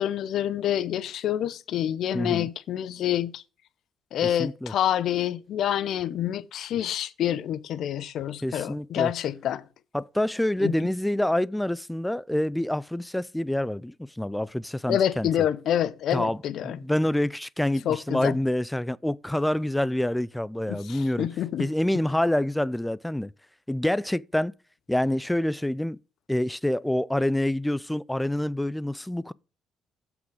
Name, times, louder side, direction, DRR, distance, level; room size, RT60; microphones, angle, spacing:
voice 1, 0.0-3.4 4.1-9.6 10.6-10.7 14.9-16.8 17.8-18.4 20.7-21.7, left 10 dB, 65° left, 0.7 m, -27 dB
voice 2, 2.1-2.5 4.2-4.7 8.4-9.1 9.9-15.3 16.1-16.4 16.6-21.3 21.6-23.3 23.7-24.5 24.9-26.0 26.3-29.3, left 1 dB, 5° left, 0.3 m, -27 dB
7.6 x 6.0 x 4.9 m
cardioid pair, 100°, 0 cm